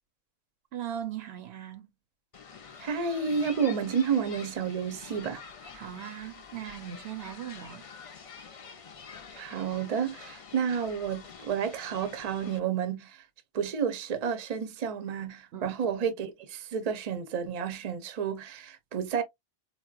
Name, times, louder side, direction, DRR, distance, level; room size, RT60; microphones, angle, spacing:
voice 1, 0.7-1.9 5.7-7.9 15.5-15.8, right 10 dB, 70° right, 0.8 m, -39 dB
sound 1, 2.3-12.6, left 6 dB, 45° left, 0.4 m, -47 dB
voice 2, 2.8-5.4 9.4-13.2 13.5-19.2, right 7 dB, 45° right, 0.6 m, -31 dB
4.1 x 2.1 x 2.4 m
omnidirectional pair, 1.1 m